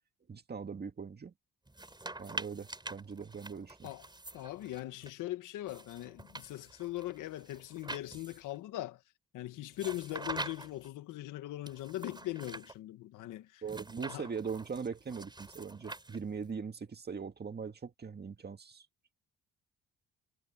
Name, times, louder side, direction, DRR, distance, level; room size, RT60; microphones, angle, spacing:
voice 1, 0.3-1.3 2.2-3.9 13.6-18.9, right 5 dB, 35° right, 2.0 m, -41 dB
sound 1, 1.7-5.1 5.7-8.6 9.7-10.9 11.7-12.7 13.7-16.5, right 2 dB, 15° right, 6.3 m, -45 dB
voice 2, 4.3-9.0 9.3-13.6 14.1-14.3, left 15 dB, 90° left, 1.8 m, -40 dB
cardioid pair, 90°, 30 cm